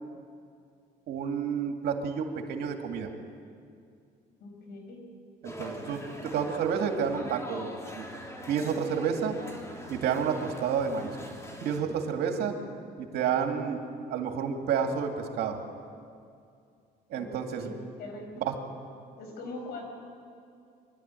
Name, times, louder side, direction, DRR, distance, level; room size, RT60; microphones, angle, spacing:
voice 1, 1.1-3.1 5.4-6.0 6.3-7.7 7.9-8.1 8.5-9.4 9.9-11.1 11.6-12.6 13.0-13.8 14.1-15.6 17.1-17.7 18.4-18.5, right 7 dB, 75° right, 3 dB, 2.4 m, -30 dB
voice 2, 4.4-5.0 17.1-18.3 19.2-19.8, left 2 dB, 70° left, 3 dB, 5.2 m, -42 dB
sound 1, 5.4-11.8, left 1 dB, 15° left, 3.0 m, -43 dB
24.5 x 12.5 x 9.1 m, 2.4 s
cardioid pair, 110°, 17 cm